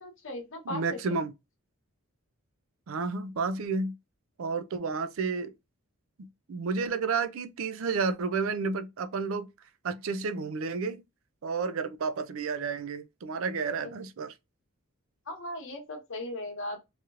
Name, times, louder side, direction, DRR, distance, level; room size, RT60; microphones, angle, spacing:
voice 1, 0.0-1.0 13.8-13.9 15.3-16.8, left 1 dB, 65° left, 1.1 m, -37 dB
voice 2, 0.7-1.3 2.9-3.9 4.4-5.5 6.2-9.5 9.8-11.0 11.4-14.3, right 4 dB, 65° right, 0.4 m, -31 dB
3.1 x 2.8 x 2.4 m
head